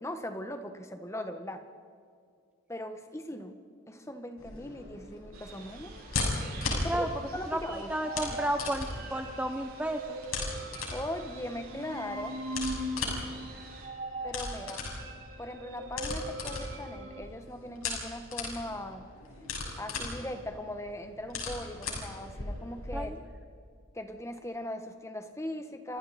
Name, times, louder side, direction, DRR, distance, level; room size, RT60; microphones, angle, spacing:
voice 1, 0.0-1.6 2.7-3.6 3.9-5.9 6.7-7.1 7.3-7.9 8.3-8.4 10.9-12.4 14.2-14.9 15.4-19.1 19.8-23.1 23.9-26.0, left 1 dB, 15° left, 7 dB, 1.5 m, -39 dB
sound 1, 4.4-23.0, left 3 dB, 75° left, 6.5 m, -38 dB
sound 2, 5.3-13.9, right 4 dB, 85° right, 8.0 m, -51 dB
voice 2, 7.5-10.2 22.9-23.2, right 1 dB, 5° right, 5 dB, 0.8 m, -32 dB
sound 3, 7.9-17.2, right 1 dB, 55° right, 6.6 m, -41 dB
29.5 x 26.5 x 4.4 m, 2.3 s
head